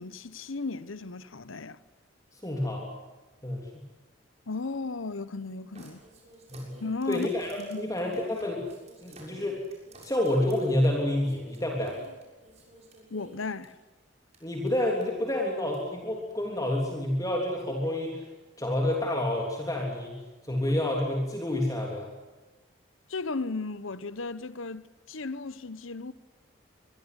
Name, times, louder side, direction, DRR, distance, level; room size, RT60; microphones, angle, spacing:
voice 1, 0.0-1.8 4.5-6.0 6.8-7.3 7.6-7.8 13.1-13.7 23.1-26.1, left 3 dB, 80° left, 1.1 m, -35 dB
voice 2, 2.3-2.9 3.4-3.7 6.5-6.8 7.1-8.7 9.0-9.6 10.0-12.0 14.4-18.3 18.6-22.1, left 1 dB, 15° left, 3.4 m, -29 dB
sound 1, 5.8-13.7 14.3-14.4 14.7-15.0 15.7-15.8, right 2 dB, 30° right, 6.8 m, -52 dB
25.5 x 21.5 x 8.2 m
head